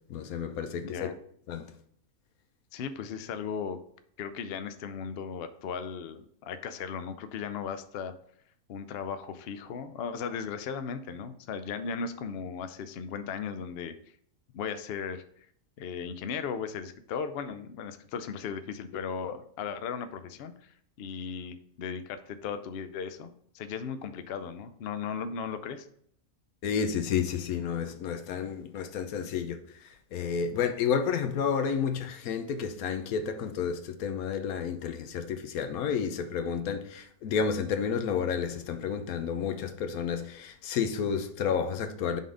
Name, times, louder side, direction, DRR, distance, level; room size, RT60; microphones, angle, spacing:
voice 1, 0.1-1.1 1.5-1.7 26.6-42.2, left 7 dB, 90° left, 1.2 m, -31 dB
voice 2, 0.8-1.2 2.7-3.8 4.2-8.1 8.7-13.9 14.5-15.5 15.8-25.9, left 6 dB, 60° left, 0.6 m, -37 dB
5.5 x 3.8 x 4.8 m
omnidirectional pair, 1.5 m